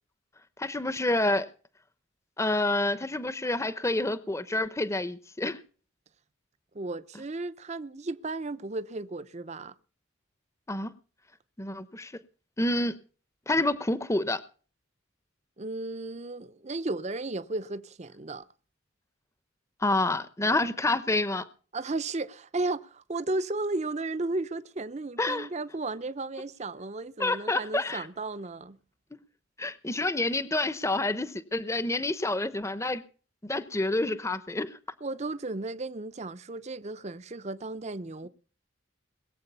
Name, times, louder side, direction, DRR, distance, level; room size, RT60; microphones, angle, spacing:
voice 1, 0.6-1.5 2.4-5.6 10.7-10.9 11.6-12.1 12.6-13.0 13.5-14.4 19.8-21.4 25.2-25.5 27.2-28.1 29.6-33.0 33.4-34.8, left 2 dB, 15° left, 0.8 m, -28 dB
voice 2, 6.7-9.7 15.6-18.5 21.7-28.8 35.0-38.3, right 2 dB, 35° right, 0.7 m, -34 dB
21.0 x 7.9 x 6.8 m
head